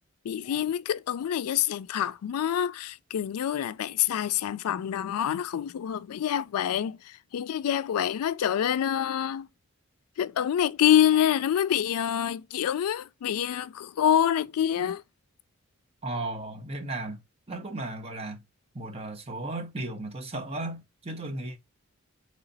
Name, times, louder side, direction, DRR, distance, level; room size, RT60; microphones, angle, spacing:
voice 1, 0.3-7.0 7.3-9.5 10.2-15.0, left 10 dB, 85° left, 0.3 m, -26 dB
voice 2, 16.0-17.2 17.5-18.4 18.7-21.6, right 2 dB, 25° right, 0.9 m, -35 dB
4.0 x 3.3 x 4.0 m
head